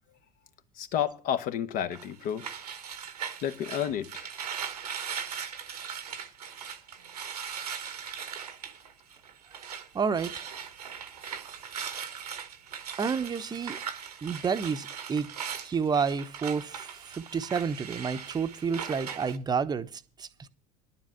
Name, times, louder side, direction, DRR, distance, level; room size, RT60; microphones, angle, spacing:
voice 1, 0.8-2.5 3.4-4.3, left 9 dB, 45° left, 1.1 m, -31 dB
sound 1, 1.9-9.9 10.1-19.4, right 7 dB, 80° right, 1.2 m, -39 dB
voice 2, 9.9-10.5 13.0-13.8 14.2-15.3 15.6-20.5, right 6 dB, 20° right, 0.9 m, -30 dB
11.0 x 7.4 x 7.4 m
figure-of-eight pair, 75°, 20 cm